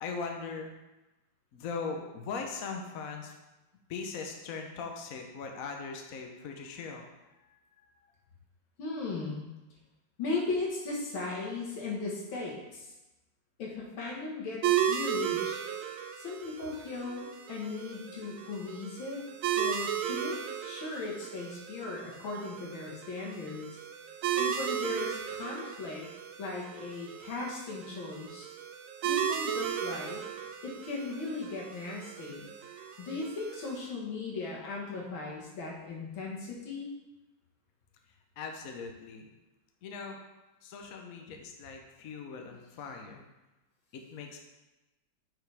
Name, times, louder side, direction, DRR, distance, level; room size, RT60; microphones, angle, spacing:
voice 1, 0.0-0.7 1.5-3.3 3.9-7.1 7.4-7.8 32.7-33.0 38.4-39.3 39.8-40.2 40.6-43.2 43.9-44.4, left 5 dB, 55° left, 3 dB, 1.0 m, -40 dB
voice 2, 8.8-9.5 10.2-12.9 13.6-15.6 16.2-19.2 19.6-23.7 24.4-26.1 26.4-28.5 29.0-30.2 30.6-32.5 33.0-36.9, left 3 dB, 80° left, -3 dB, 2.3 m, -37 dB
sound 1, 14.6-33.8, right 9 dB, 85° right, 1.5 m, -35 dB
7.0 x 6.0 x 3.4 m, 1.0 s
omnidirectional pair, 2.2 m